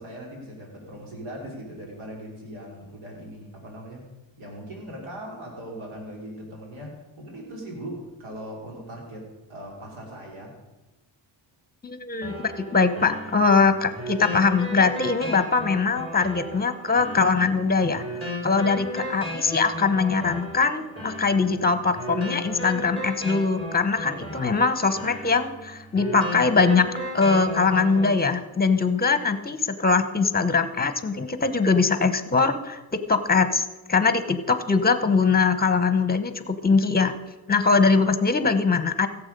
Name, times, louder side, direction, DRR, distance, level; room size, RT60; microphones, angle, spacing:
voice 1, 0.0-4.1 4.4-10.5 18.5-18.9 24.0-24.6, right 1 dB, 85° right, -1 dB, 3.3 m, -40 dB
voice 2, 11.8-26.9 27.1-37.1 37.5-39.1, left 4 dB, 20° left, 11 dB, 0.9 m, -22 dB
sound 1, 12.2-28.2, equal, 25° right, 4.8 m, -35 dB
16.0 x 7.2 x 5.3 m, 1.1 s
cardioid pair, 95°, 47 cm